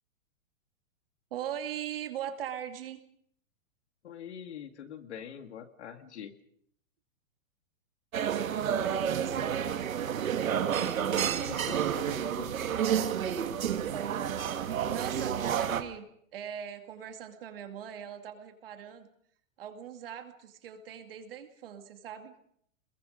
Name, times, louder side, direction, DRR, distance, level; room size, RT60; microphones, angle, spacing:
voice 1, 1.3-3.0 8.5-9.6 13.6-16.1 16.3-19.1 19.6-22.4, right 9 dB, 45° right, 6 dB, 2.5 m, -40 dB
voice 2, 4.0-6.3 10.7-12.7, left 8 dB, 55° left, 8 dB, 2.1 m, -44 dB
sound 1, 8.1-15.8, right 8 dB, 90° right, 2.2 m, -30 dB
28.0 x 22.0 x 5.2 m, 0.67 s
hypercardioid pair, 180°, 40 cm